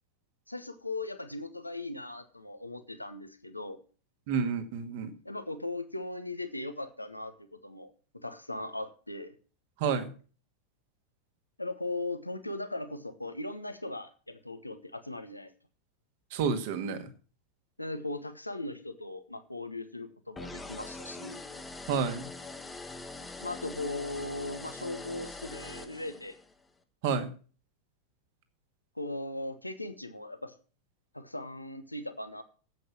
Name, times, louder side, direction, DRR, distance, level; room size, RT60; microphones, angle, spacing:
voice 1, 0.5-3.8 5.2-7.9 8.2-9.3 11.6-15.5 17.8-21.4 23.4-26.4 28.9-30.5 31.1-32.4, left 2 dB, 85° left, 10 dB, 1.1 m, -38 dB
voice 2, 4.3-5.1 9.8-10.1 16.3-17.1 21.9-22.3 27.0-27.3, right 6 dB, 50° right, 7 dB, 1.9 m, -30 dB
sound 1, 20.4-26.5, left 2 dB, 10° left, 1.2 m, -43 dB
9.2 x 8.2 x 7.3 m, 0.39 s
figure-of-eight pair, 90°, 0 cm